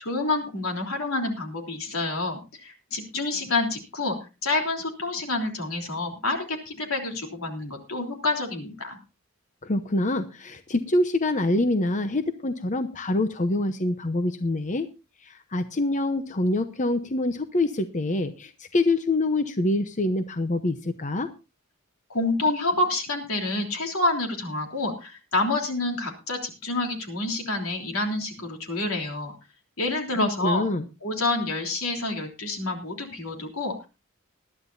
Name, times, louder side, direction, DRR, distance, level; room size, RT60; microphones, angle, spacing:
voice 1, 0.0-4.2 4.4-9.0 22.1-29.3 29.8-30.7 31.0-33.9, left 2 dB, 85° left, 3 dB, 3.4 m, -28 dB
voice 2, 9.6-14.9 15.2-21.3 30.2-30.9, left 2 dB, 35° left, 9 dB, 0.8 m, -25 dB
20.0 x 12.0 x 2.6 m, 0.29 s
head